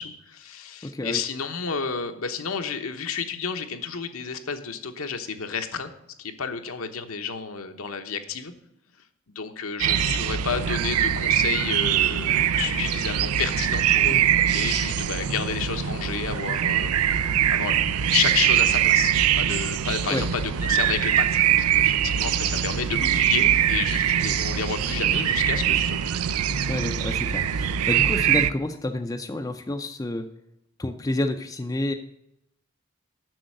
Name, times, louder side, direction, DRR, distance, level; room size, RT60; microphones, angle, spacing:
voice 1, 0.0-5.9 6.2-8.5 9.3-16.9 17.5-17.8 18.1-21.4 21.7-26.2, left 6 dB, 75° left, 6 dB, 1.0 m, -31 dB
voice 2, 0.8-1.2 14.1-14.3 20.1-20.2 26.7-30.3 30.8-31.9, left 1 dB, 15° left, 6 dB, 0.4 m, -29 dB
sound 1, 9.8-28.5, right 10 dB, 90° right, 0.4 m, -23 dB
7.7 x 6.4 x 7.7 m, 0.81 s
head